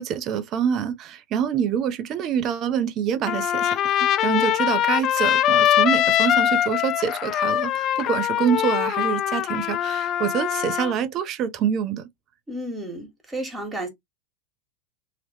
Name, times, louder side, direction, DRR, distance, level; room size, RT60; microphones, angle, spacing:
voice 1, 0.0-12.1, right 8 dB, 40° right, 0.6 m, -26 dB
Trumpet, 3.3-10.9, left 11 dB, 40° left, 0.5 m, -22 dB
voice 2, 12.5-13.9, right 1 dB, 15° right, 1.7 m, -32 dB
3.0 x 2.9 x 2.9 m
hypercardioid pair, 95°, 0 cm